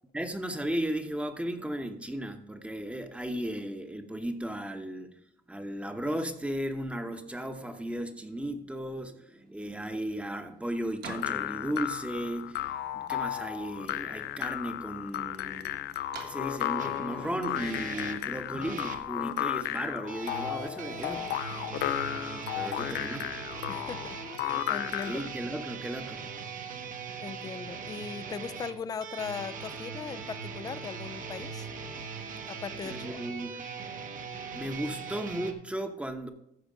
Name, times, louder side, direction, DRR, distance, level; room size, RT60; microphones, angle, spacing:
voice 1, 0.1-5.2 5.5-15.8 16.2-21.2 22.5-23.3 25.0-26.2 32.8-33.6 34.5-36.3, right 1 dB, 5° right, 1.0 m, -35 dB
sound 1, 9.4-18.5, right 4 dB, 75° right, 1.7 m, -53 dB
sound 2, 11.1-25.3, left 13 dB, 75° left, 0.6 m, -34 dB
sound 3, 16.8-19.0 20.1-35.5, right 5 dB, 50° right, 1.2 m, -40 dB
voice 2, 23.7-25.2 27.2-31.7 32.5-33.1, left 6 dB, 20° left, 0.4 m, -39 dB
14.5 x 4.9 x 5.1 m
cardioid pair, 110°, 17 cm